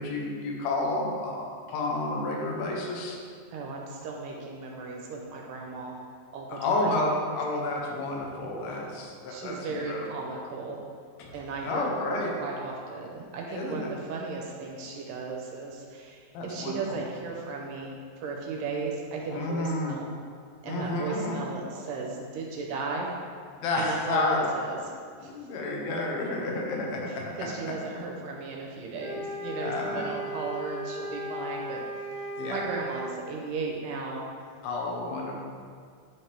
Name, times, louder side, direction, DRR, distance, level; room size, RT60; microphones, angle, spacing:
voice 1, 0.0-3.2 6.5-9.6 9.9-10.1 11.2-11.3 11.6-12.3 13.5-13.9 16.3-17.0 19.3-19.9 20.7-21.4 23.6-24.5 25.2-27.5 29.6-30.1 32.4-32.6 34.6-35.3, left 2 dB, 85° left, -1 dB, 2.8 m, -30 dB
voice 2, 3.5-6.0 6.3-6.9 9.3-10.8 11.3-20.1 20.6-23.1 23.8-24.8 25.2-25.3 27.1-31.8 32.1-34.3, right 4 dB, 75° right, -1 dB, 2.2 m, -36 dB
sound 1, 29.0-33.1, equal, 65° left, 2.3 m, -36 dB
10.0 x 3.5 x 4.4 m, 2.1 s
omnidirectional pair, 4.3 m